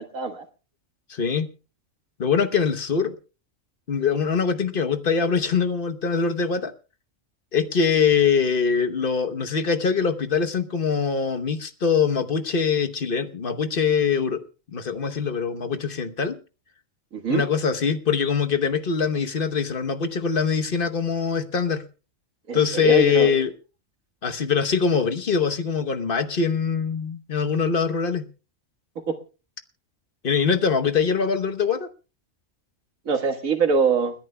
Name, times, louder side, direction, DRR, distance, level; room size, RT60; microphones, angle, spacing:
voice 1, 0.1-0.4 17.1-17.4 22.5-23.5 29.1-29.2 33.1-34.1, right 5 dB, 85° right, 1.9 m, -23 dB
voice 2, 1.1-1.5 2.2-3.1 3.9-6.7 7.5-14.4 14.7-16.4 17.3-21.8 22.5-23.5 24.2-28.3 30.2-31.9, left 6 dB, 45° left, 1.1 m, -23 dB
30.0 x 10.5 x 2.2 m
omnidirectional pair, 1.4 m